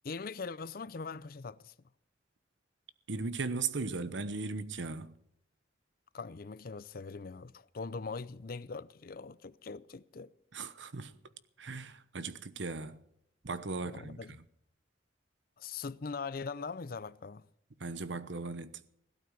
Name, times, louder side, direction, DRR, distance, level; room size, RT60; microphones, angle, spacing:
voice 1, 0.0-1.7 6.1-10.3 13.9-14.4 15.6-17.5, left 4 dB, 55° left, 0.5 m, -41 dB
voice 2, 3.1-5.1 10.5-11.1 11.6-13.0 13.4-14.4 17.8-18.8, right 4 dB, 85° right, 1.0 m, -37 dB
17.0 x 12.0 x 6.4 m
head